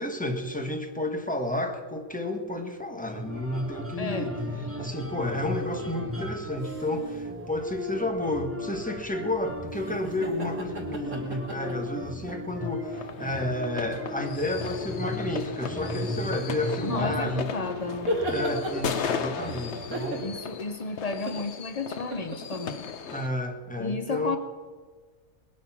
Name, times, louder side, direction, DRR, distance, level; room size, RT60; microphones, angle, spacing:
voice 1, 0.0-4.4 4.8-17.5 18.3-20.3 23.1-24.4, left 1 dB, 5° left, 4 dB, 1.3 m, -31 dB
sound 1, 3.1-20.4, equal, 10° right, 0.8 m, -37 dB
voice 2, 4.0-4.3 4.7-4.8 16.8-18.2 20.2-22.8 23.8-24.4, left 4 dB, 70° left, 8 dB, 0.3 m, -33 dB
sound 2, 6.5-7.2 9.7-12.5 13.2-13.3 17.1-19.6 19.9-20.6 21.0-21.5 22.1-22.8, right 1 dB, 60° right, 3.0 m, -34 dB
sound 3, 12.9-23.3, left 7 dB, 55° left, 0.9 m, -37 dB
20.0 x 10.5 x 6.0 m, 1.5 s
omnidirectional pair, 1.7 m